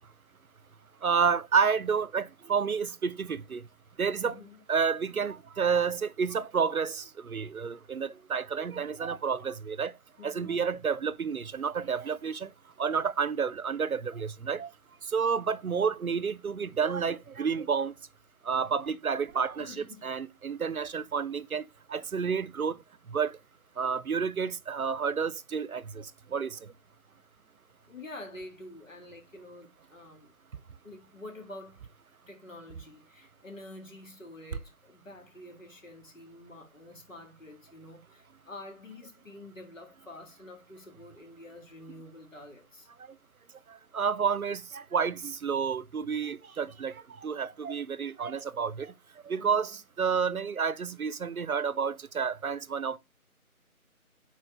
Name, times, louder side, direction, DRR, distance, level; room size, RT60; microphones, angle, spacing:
voice 1, 1.0-3.6 4.0-4.4 4.7-10.0 10.2-12.5 12.8-14.7 15.1-17.9 18.4-19.7 20.0-22.8 23.1-23.4 23.8-26.7 43.7-48.9 49.2-53.0, right 6 dB, 70° right, 0.6 m, -30 dB
voice 2, 4.2-4.6 10.2-10.6 19.6-20.1 27.8-30.3 30.8-31.8 32.3-42.9 49.4-49.8, left 2 dB, 60° left, 2.0 m, -48 dB
4.5 x 4.3 x 5.4 m
figure-of-eight pair, 165°, 44 cm